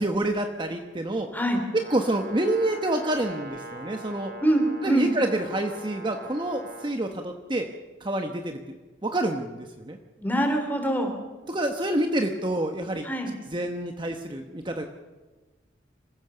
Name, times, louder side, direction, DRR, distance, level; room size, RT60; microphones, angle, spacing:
voice 1, 0.0-1.3 1.7-4.3 4.8-7.7 8.0-8.6 9.0-10.0 11.5-13.1 13.5-14.9, right 1 dB, 25° right, 4 dB, 1.1 m, -27 dB
Brass instrument, 1.7-7.0, right 2 dB, 55° right, 3.3 m, -42 dB
voice 2, 4.4-5.1 10.2-11.1 13.0-13.3, right 1 dB, 10° left, 4 dB, 3.2 m, -24 dB
25.5 x 16.0 x 6.9 m, 1.3 s
head